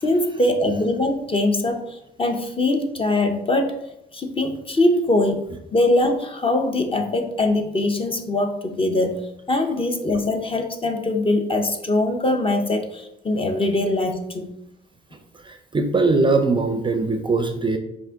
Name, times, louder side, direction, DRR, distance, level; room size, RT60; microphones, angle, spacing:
voice 1, 0.0-3.8 4.1-5.4 5.7-9.2 9.5-14.5, left 2 dB, 25° left, 5 dB, 0.6 m, -22 dB
voice 2, 15.4-17.8, right 3 dB, 25° right, 6 dB, 0.4 m, -21 dB
4.8 x 2.5 x 3.5 m, 0.80 s
cardioid pair, 90°, 20 cm